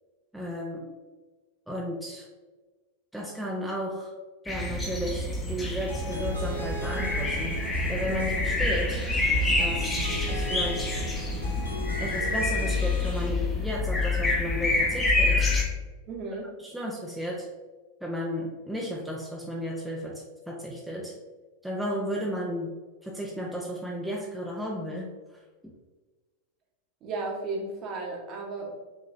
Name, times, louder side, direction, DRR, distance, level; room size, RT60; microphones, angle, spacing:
voice 1, 0.3-0.9 1.7-2.3 3.1-4.1 4.4-9.0 9.6-11.0 12.0-15.5 16.6-17.5 18.0-21.1 21.6-22.7 23.0-25.1, equal, ahead, -2 dB, 0.5 m, -34 dB
sound 1, 4.5-15.6, left 2 dB, 15° left, 0.9 m, -27 dB
sound 2, 5.9-13.3, equal, 90° left, 1.2 m, -39 dB
sound 3, 6.8-12.0, left 2 dB, 55° left, 0.8 m, -38 dB
voice 2, 16.1-16.5 27.0-28.7, right 3 dB, 35° right, 0 dB, 1.0 m, -34 dB
5.3 x 2.9 x 2.6 m, 1.3 s
figure-of-eight pair, 90°, 0 cm